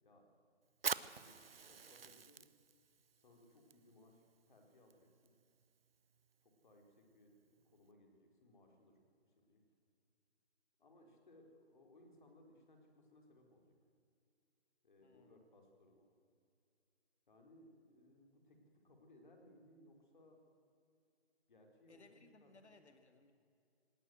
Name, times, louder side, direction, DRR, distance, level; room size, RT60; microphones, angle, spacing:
Fire, 0.7-7.9, right 6 dB, 60° right, 0.8 m, -48 dB
voice 1, 1.0-2.5 3.2-5.3 6.4-9.0 9.4-9.6 10.8-13.7 14.8-16.1 17.3-20.4 21.5-22.5, left 1 dB, 45° left, 3 dB, 4.2 m, -65 dB
voice 2, 15.0-15.4 21.9-23.3, left 3 dB, 85° left, 8 dB, 2.3 m, -64 dB
19.0 x 19.0 x 7.8 m, 2.5 s
hypercardioid pair, 170°, 33 cm